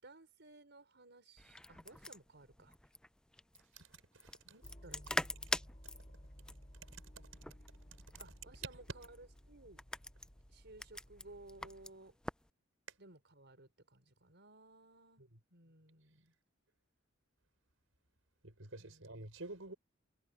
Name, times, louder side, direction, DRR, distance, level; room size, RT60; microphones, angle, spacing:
voice 1, 0.0-2.8 4.4-5.4 7.2-7.4 8.2-9.8 10.5-12.2 13.0-15.2 15.5-16.3 18.8-19.1, right 2 dB, 60° right, 5.3 m, -58 dB
sound 1, 1.4-12.5, left 1 dB, 5° left, 0.3 m, -45 dB
sound 2, 4.6-11.9, equal, 30° left, 4.7 m, -57 dB
voice 2, 18.4-19.7, right 2 dB, 85° right, 5.1 m, -49 dB
head